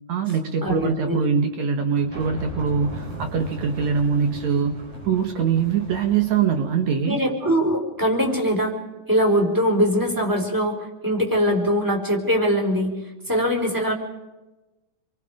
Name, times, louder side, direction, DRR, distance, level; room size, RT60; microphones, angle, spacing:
voice 1, 0.1-7.2, right 6 dB, 70° right, 6 dB, 2.7 m, -23 dB
voice 2, 0.6-1.2 7.0-8.7 9.1-12.9 13.3-13.9, equal, 5° right, 1 dB, 4.5 m, -22 dB
sound 1, 2.0-7.0, right 2 dB, 50° right, 6.1 m, -38 dB
29.5 x 23.5 x 5.1 m, 1.0 s
omnidirectional pair, 3.5 m